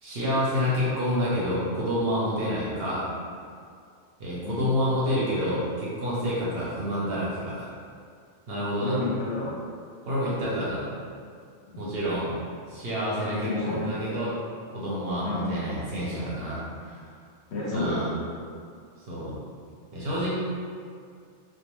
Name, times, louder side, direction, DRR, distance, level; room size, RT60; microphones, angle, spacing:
voice 1, 0.0-3.1 4.2-7.8 8.5-9.0 10.0-10.9 11.8-12.4 12.7-14.3 14.7-17.1 17.7-18.1 19.1-19.4 19.9-20.4, equal, 60° right, -7 dB, 0.7 m, -28 dB
voice 2, 8.8-9.5 11.7-11.8 13.4-14.0 15.2-15.5 17.5-18.0, left 2 dB, 65° left, -5 dB, 0.8 m, -30 dB
2.3 x 2.2 x 2.9 m, 2.2 s
omnidirectional pair, 1.3 m